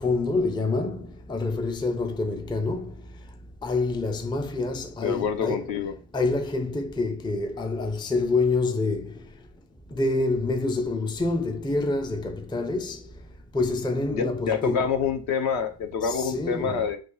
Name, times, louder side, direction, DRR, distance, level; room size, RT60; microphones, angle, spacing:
voice 1, 0.0-2.9 3.6-5.8 6.1-9.1 9.9-13.0 13.5-14.9 16.0-16.9, left 3 dB, 10° left, 0.3 m, -27 dB
voice 2, 5.0-5.9 14.1-17.0, left 6 dB, 80° left, 1.1 m, -27 dB
6.3 x 2.9 x 5.4 m
omnidirectional pair, 1.1 m